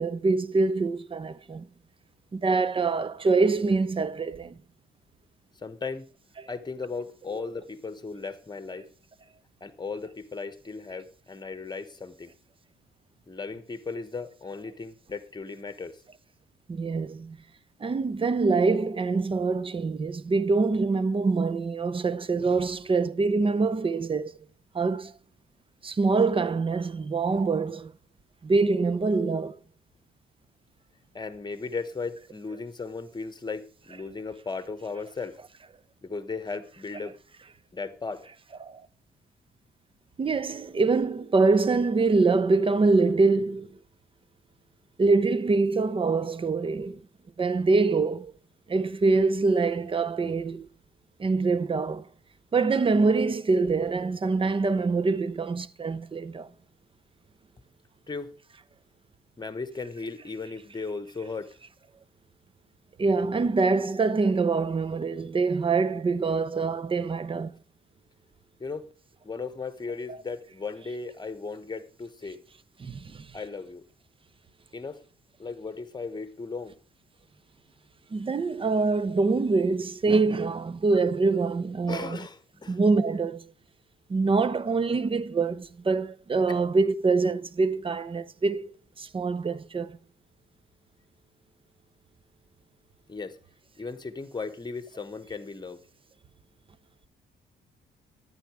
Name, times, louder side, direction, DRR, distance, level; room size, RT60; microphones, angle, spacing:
voice 1, 0.0-1.7 2.3-4.6 16.7-17.4 17.8-24.4 24.7-25.1 25.8-27.9 28.4-29.6 38.6-38.8 40.2-43.8 45.0-47.0 47.4-48.3 48.7-50.7 51.2-52.1 52.5-56.5 63.0-67.5 70.1-70.2 72.8-73.3 78.1-82.2 82.7-83.4 84.1-90.0, right 4 dB, 25° right, 0.7 m, -25 dB
voice 2, 5.6-6.1 6.5-8.9 9.6-12.3 13.3-16.0 31.1-35.4 36.0-37.2 37.7-38.3 58.1-58.3 59.4-61.5 68.6-68.9 69.2-72.4 73.3-73.8 74.7-75.0 75.4-76.8 81.9-82.8 86.5-86.6 93.1-93.4 93.8-95.8, left 4 dB, 20° left, 1.2 m, -36 dB
11.0 x 9.1 x 4.9 m
cardioid pair, 90°, 20 cm